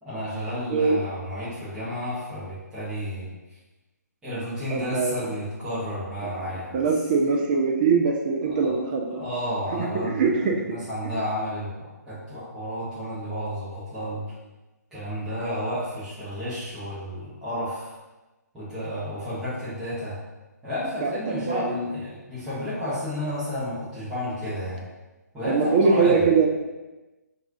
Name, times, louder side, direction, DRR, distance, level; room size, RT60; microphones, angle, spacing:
voice 1, 0.0-3.3 4.2-6.9 8.5-8.8 9.1-14.2 14.9-17.9 18.5-20.2 20.6-24.8 25.3-26.3, equal, 5° right, -13 dB, 1.0 m, -32 dB
voice 2, 4.7-5.2 6.2-6.3 6.7-9.2 9.7-10.6 21.0-21.9 25.5-26.5, right 5 dB, 30° right, 2 dB, 0.4 m, -22 dB
5.8 x 2.6 x 2.7 m, 1.1 s
figure-of-eight pair, 135°, 10 cm